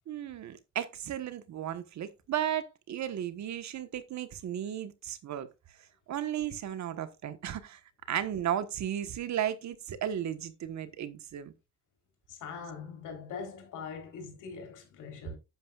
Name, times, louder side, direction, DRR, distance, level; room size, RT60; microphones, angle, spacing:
voice 1, 0.1-5.5 6.1-7.8 8.1-11.5, right 10 dB, 65° right, 1.3 m, -34 dB
voice 2, 12.3-15.4, left 5 dB, 85° left, 3.9 m, -42 dB
10.0 x 9.1 x 2.4 m
cardioid pair, 90°, 30 cm